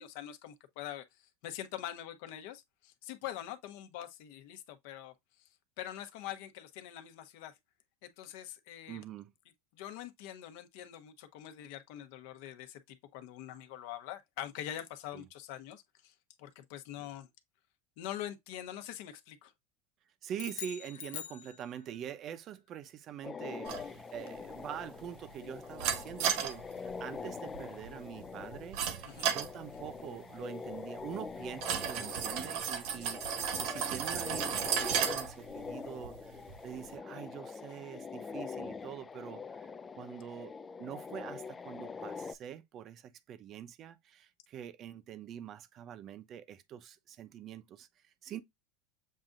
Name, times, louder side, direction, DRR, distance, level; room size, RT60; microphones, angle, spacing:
voice 1, 0.0-5.1 5.4-5.5 5.8-7.6 8.0-9.0 9.7-17.3 18.0-19.5 29.1-29.3, left 12 dB, 65° left, 1.0 m, -44 dB
voice 2, 8.9-9.3 15.1-15.3 17.0-17.1 20.2-29.1 29.3-48.4, right 9 dB, 40° right, 0.7 m, -45 dB
sound 1, 20.3-22.1, left 10 dB, 80° left, 0.7 m, -44 dB
sound 2, 23.2-42.4, left 5 dB, 20° left, 0.3 m, -44 dB
sound 3, 23.7-37.0, right 8 dB, 60° right, 1.1 m, -37 dB
7.5 x 2.6 x 2.4 m
supercardioid pair, 130°, 0 cm